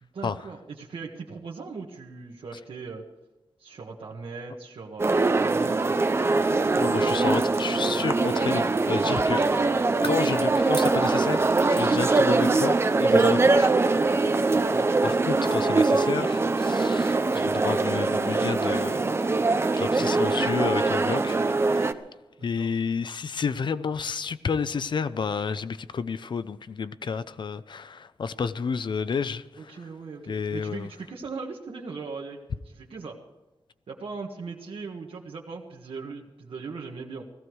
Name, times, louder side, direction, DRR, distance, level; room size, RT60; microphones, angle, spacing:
voice 1, 0.0-3.0 3.6-6.0 14.6-14.9 22.4-22.8 29.6-33.2 33.9-37.2, right 4 dB, 90° right, -2 dB, 1.5 m, -39 dB
sound 1, 5.0-21.9, right 3 dB, 30° right, 0.7 m, -23 dB
voice 2, 6.5-9.5 10.0-13.7 13.9-14.2 15.0-19.2 19.8-21.4 21.6-22.0 22.4-29.7 30.3-30.9, left 5 dB, 60° left, 14 dB, 0.6 m, -30 dB
17.5 x 15.0 x 4.7 m, 1.1 s
wide cardioid pair, 180°, 9 cm